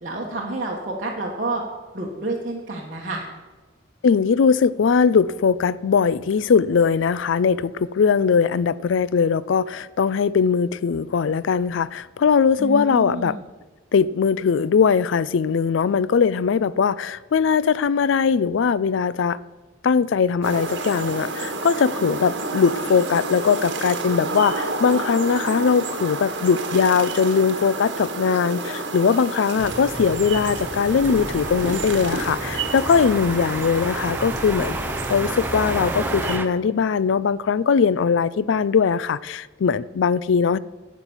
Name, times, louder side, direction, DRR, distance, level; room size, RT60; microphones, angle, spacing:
voice 1, 0.0-1.6 1.9-3.2 12.6-13.4, right 2 dB, 40° right, -4 dB, 1.3 m, -29 dB
voice 2, 4.0-13.4 13.9-19.4 19.8-34.8 35.1-40.6, left 6 dB, 70° left, 19 dB, 0.4 m, -20 dB
sound 1, 20.4-36.4, right 3 dB, 60° right, 1.5 m, -30 dB
sound 2, 29.6-36.5, right 1 dB, 10° right, 0.5 m, -31 dB
9.9 x 8.3 x 7.2 m, 1.3 s
head